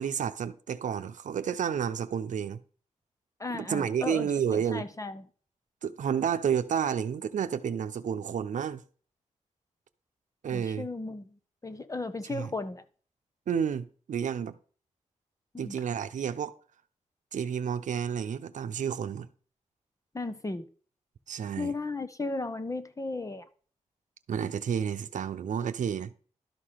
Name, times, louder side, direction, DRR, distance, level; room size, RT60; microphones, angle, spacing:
voice 1, 0.0-2.6 3.5-4.9 5.8-8.8 10.4-10.9 12.2-12.5 13.5-14.6 15.6-16.5 17.3-19.3 21.3-21.8 24.3-26.1, right 8 dB, 90° right, 0.7 m, -30 dB
voice 2, 3.4-5.2 10.5-11.3 11.6-12.8 15.5-15.7 20.1-20.7 21.6-23.4, left 3 dB, 25° left, 1.0 m, -35 dB
12.0 x 5.0 x 5.7 m
wide cardioid pair, 85°, 13 cm